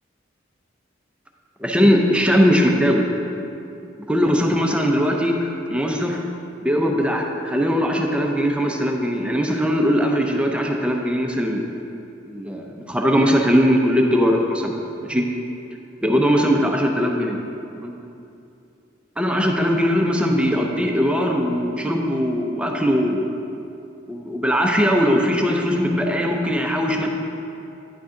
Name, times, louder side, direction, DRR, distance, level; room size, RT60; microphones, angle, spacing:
voice 1, 1.6-3.1 4.1-6.2 6.6-11.6 12.3-14.7 15.0-15.2 16.0-17.4 17.8-17.9 19.2-23.3 24.1-27.1, equal, 5° right, 1 dB, 0.5 m, -20 dB
9.9 x 6.0 x 3.8 m, 2.7 s
head